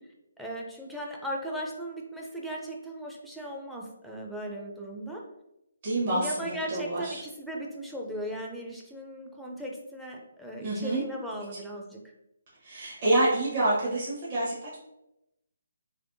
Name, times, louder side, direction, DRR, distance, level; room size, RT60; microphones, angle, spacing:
voice 1, 0.4-5.3 6.1-12.0, equal, ahead, -2 dB, 0.4 m, -37 dB
voice 2, 5.8-7.2 10.6-11.0 12.6-14.8, right 2 dB, 40° right, -7 dB, 1.0 m, -27 dB
3.3 x 2.9 x 2.6 m, 0.87 s
hypercardioid pair, 155°, 0 cm